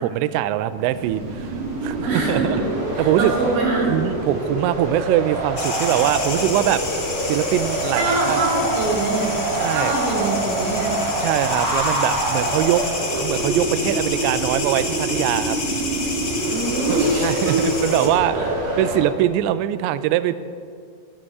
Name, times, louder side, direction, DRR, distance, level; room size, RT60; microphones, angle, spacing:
voice 1, 0.0-1.5 1.8-2.6 3.0-3.3 3.9-8.4 9.5-10.0 11.2-12.8 13.1-15.6 16.9-18.4 18.8-20.4, right 13 dB, 85° right, 13 dB, 2.6 m, -22 dB
sound 1, 0.7-19.0, right 1 dB, 35° right, 2.7 m, -26 dB
voice 2, 2.0-2.6 3.0-3.9 7.9-9.3 9.7-10.9 16.5-17.6 18.0-18.1 18.3-18.8, right 3 dB, 65° right, -3 dB, 6.0 m, -24 dB
sound 2, 5.6-18.1, left 3 dB, 90° left, 1.1 m, -30 dB
21.0 x 8.8 x 4.8 m, 2.1 s
omnidirectional pair, 5.8 m